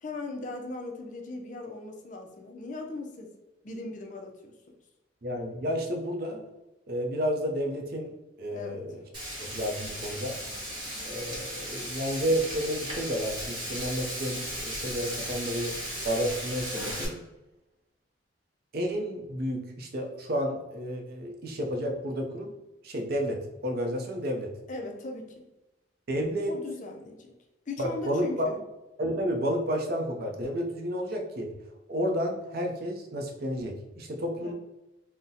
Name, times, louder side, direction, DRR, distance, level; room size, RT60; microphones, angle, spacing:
voice 1, 0.0-3.3 3.6-4.5 8.5-9.0 24.7-25.5 26.5-27.3 27.7-28.6 34.4-34.5, left 2 dB, 40° left, 2 dB, 0.4 m, -38 dB
voice 2, 5.2-6.4 6.9-8.9 9.4-10.4 11.0-15.7 16.0-17.2 18.7-22.5 22.8-24.5 26.1-26.5 27.8-28.5 29.0-31.5 31.9-34.5, equal, 50° right, 3 dB, 0.5 m, -31 dB
Frying (food), 9.1-17.0, equal, 25° right, 0.9 m, -36 dB
3.8 x 2.1 x 2.7 m, 1.0 s
head